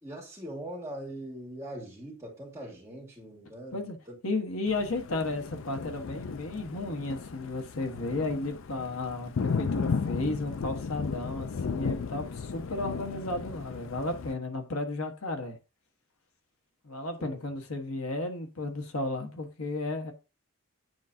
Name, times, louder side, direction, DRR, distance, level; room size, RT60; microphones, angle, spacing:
voice 1, 0.0-4.1 17.2-17.4, right 1 dB, 15° right, 2.5 m, -41 dB
voice 2, 4.2-15.6 16.8-20.1, left 2 dB, 85° left, 1.3 m, -33 dB
Thunder, 4.7-14.3, left 5 dB, 65° left, 0.4 m, -35 dB
9.5 x 4.7 x 2.7 m
head